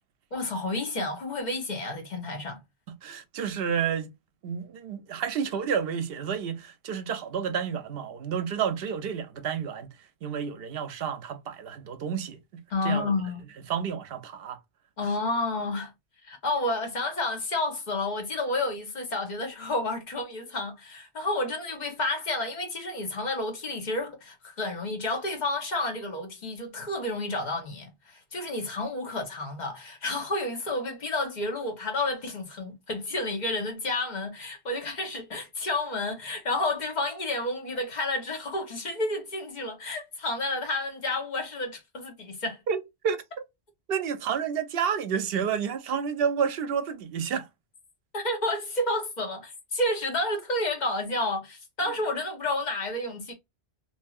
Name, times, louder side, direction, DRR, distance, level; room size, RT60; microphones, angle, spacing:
voice 1, 0.3-2.6 12.7-13.4 15.0-15.9 16.2-42.6 48.1-53.3, left 2 dB, 45° left, 1.0 m, -30 dB
voice 2, 3.0-4.1 4.4-9.9 10.2-13.1 13.7-14.6 42.7-43.4 43.9-47.5, right 7 dB, 70° right, 0.7 m, -30 dB
2.8 x 2.7 x 2.3 m
omnidirectional pair, 1.1 m